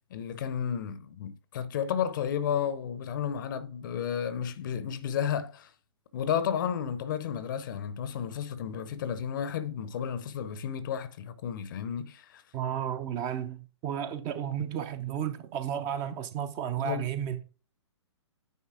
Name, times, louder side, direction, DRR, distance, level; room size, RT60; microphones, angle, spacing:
voice 1, 0.1-5.7 6.1-12.4 16.8-17.1, left 8 dB, 45° left, 0.7 m, -32 dB
voice 2, 12.5-17.4, right 9 dB, 25° right, 0.7 m, -33 dB
9.4 x 4.0 x 3.8 m
figure-of-eight pair, 120°, 15 cm